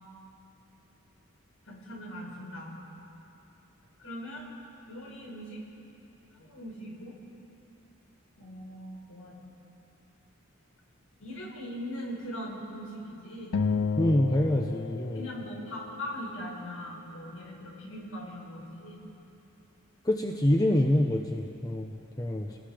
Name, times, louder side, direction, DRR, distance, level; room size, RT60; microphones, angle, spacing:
voice 1, 1.7-2.7 4.0-4.5 4.9-5.6 6.3-7.1 8.4-9.4 11.2-13.6 15.1-19.0, equal, 90° left, -2 dB, 5.5 m, -40 dB
sound 1, 13.5-16.1, left 5 dB, 70° left, 0.5 m, -32 dB
voice 2, 14.0-15.3 20.0-22.6, left 1 dB, 20° left, 2 dB, 0.9 m, -26 dB
29.5 x 20.0 x 5.1 m, 2.9 s
head